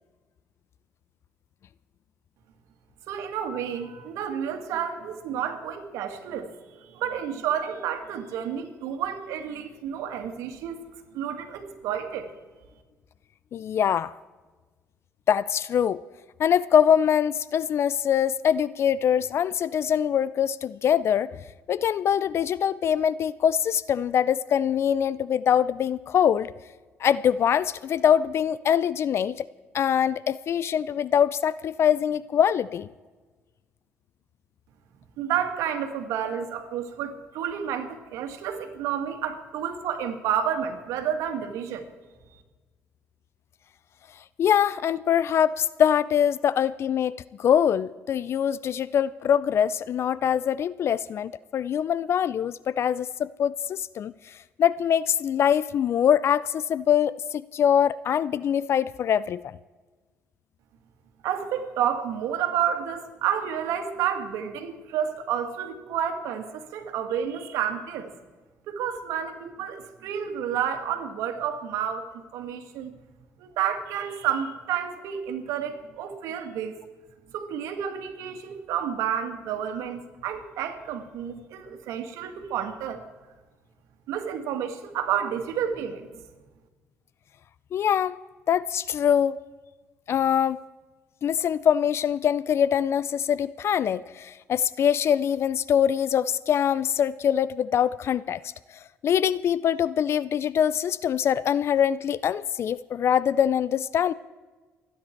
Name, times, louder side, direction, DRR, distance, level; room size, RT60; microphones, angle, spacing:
voice 1, 3.1-6.5 6.8-10.8 11.1-12.3 35.2-41.9 61.2-68.1 68.7-72.9 73.4-76.8 77.3-83.1 84.1-86.1, right 9 dB, 80° right, 6 dB, 2.0 m, -30 dB
voice 2, 13.5-14.1 15.3-16.0 16.4-21.4 21.7-26.5 27.0-29.5 29.7-32.9 44.4-59.6 87.7-88.2 88.5-89.4 90.1-90.6 91.2-98.4 99.0-104.1, left 9 dB, 55° left, 19 dB, 0.4 m, -23 dB
27.5 x 10.0 x 4.5 m, 1.3 s
supercardioid pair, 80°, 5 cm